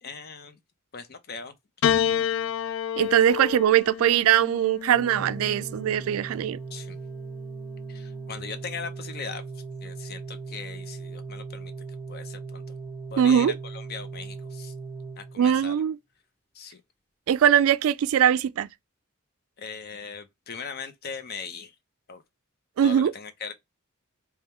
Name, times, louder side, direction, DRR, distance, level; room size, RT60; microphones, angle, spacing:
voice 1, 0.0-0.6 0.9-1.6 6.7-7.0 7.9-11.7 12.1-12.6 13.1-14.7 15.2-15.8 16.5-16.8 19.6-21.7 22.1-22.2 22.8-23.5, left 5 dB, 50° left, 0.7 m, -39 dB
Piano, 1.8-6.3 7.3-8.1, left 9 dB, 75° left, 0.4 m, -29 dB
voice 2, 3.0-6.6 13.2-13.5 15.4-16.0 17.3-18.7 22.8-23.1, right 9 dB, 85° right, 0.3 m, -21 dB
Organ, 4.9-15.8, right 4 dB, 10° left, 0.8 m, -39 dB
3.5 x 2.3 x 4.3 m
head